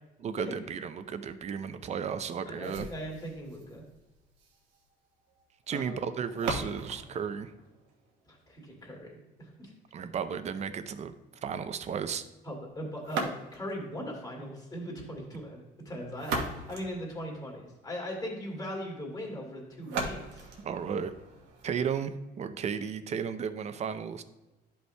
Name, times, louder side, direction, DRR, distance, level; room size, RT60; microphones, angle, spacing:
voice 1, 0.2-2.9 5.7-7.5 9.9-11.1 11.4-12.2 20.6-21.1 21.6-24.2, right 7 dB, 40° right, 10 dB, 0.6 m, -34 dB
voice 2, 2.5-3.8 5.7-6.0 8.3-9.7 12.4-20.5, equal, 20° left, -1 dB, 2.3 m, -39 dB
sound 1, 2.6-8.6 13.0-13.9 15.9-17.8 19.8-21.8, right 3 dB, 90° right, 1.2 m, -39 dB
11.0 x 5.4 x 2.2 m, 1.1 s
cardioid pair, 110°, 17 cm